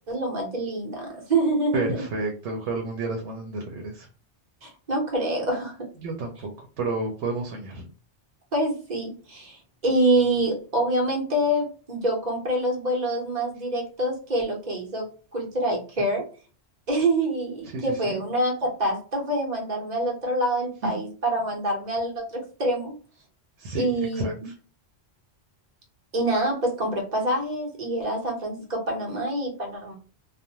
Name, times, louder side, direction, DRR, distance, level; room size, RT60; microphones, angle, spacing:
voice 1, 0.1-2.0 4.6-5.8 8.5-15.1 15.3-16.2 16.9-22.9 23.7-24.5 26.1-30.0, right 1 dB, 40° right, -1 dB, 1.0 m, -26 dB
voice 2, 1.7-4.1 6.0-7.9 17.7-18.2 20.8-20.9 23.6-23.9 24.1-24.5, right 3 dB, 85° right, 2 dB, 0.9 m, -31 dB
2.4 x 2.1 x 2.8 m, 0.37 s
omnidirectional pair, 1.2 m